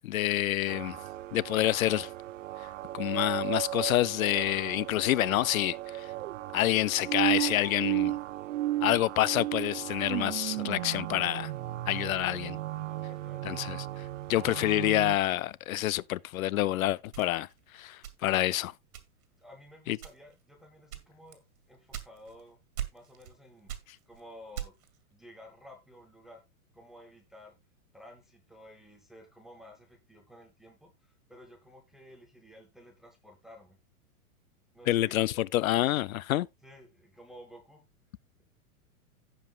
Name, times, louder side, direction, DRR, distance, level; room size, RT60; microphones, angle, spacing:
voice 1, 0.0-1.0 1.3-2.1 2.9-6.1 6.5-8.2 8.8-11.5 11.9-12.6 13.4-13.9 14.3-17.5 17.7-18.7 19.9-20.0 34.9-36.5, left 15 dB, 70° left, 0.5 m, -27 dB
sound 1, 0.7-15.2, right 15 dB, 60° right, 0.5 m, -35 dB
voice 2, 12.9-13.4 19.4-22.6 22.9-24.8 25.1-26.4 26.7-27.6 27.9-33.8 34.7-35.2 36.6-37.8, left 1 dB, ahead, 0.5 m, -53 dB
sound 2, 17.1-18.5 18.9-19.4 19.9-20.4 20.9-22.4 22.8-23.4 23.7-25.0, right 10 dB, 85° right, 2.3 m, -40 dB
16.5 x 5.5 x 2.3 m
supercardioid pair, 165°, 44 cm